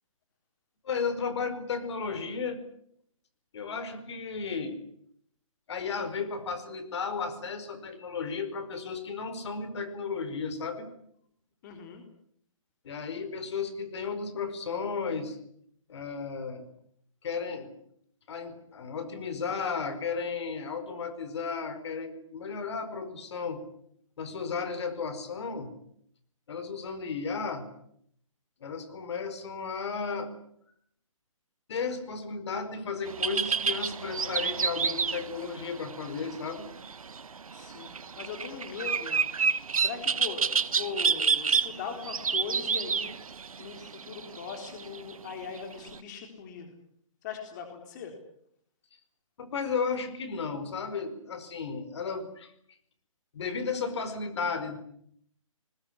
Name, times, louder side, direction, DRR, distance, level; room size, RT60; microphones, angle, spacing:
voice 1, 0.8-2.6 3.5-4.8 5.7-10.9 12.8-15.4 15.9-16.6 17.2-17.7 18.3-23.7 24.2-25.7 26.5-27.7 28.6-30.3 31.7-36.7 49.4-52.5 53.3-54.8, left 5 dB, 55° left, 11 dB, 4.8 m, -34 dB
voice 2, 11.6-12.0 37.5-39.2 39.8-43.1 43.6-46.7 47.2-48.2, left 6 dB, 35° left, 4 dB, 4.0 m, -40 dB
sound 1, 33.1-46.0, right 5 dB, 85° right, 1.3 m, -30 dB
21.0 x 21.0 x 10.0 m, 0.68 s
hypercardioid pair, 155°, 18 cm